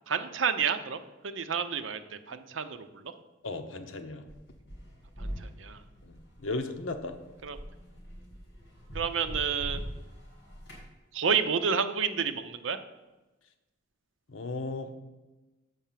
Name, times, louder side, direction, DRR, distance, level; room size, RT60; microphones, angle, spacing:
voice 1, 0.1-3.1 5.2-5.8 7.4-7.6 8.9-9.8 11.1-12.8, right 6 dB, 75° right, 10 dB, 0.7 m, -30 dB
voice 2, 3.4-4.2 6.0-7.1 14.3-15.0, left 2 dB, 85° left, 7 dB, 0.9 m, -36 dB
sound 1, 4.3-10.9, equal, 60° left, 3.4 m, -43 dB
7.0 x 5.6 x 7.4 m, 1.1 s
head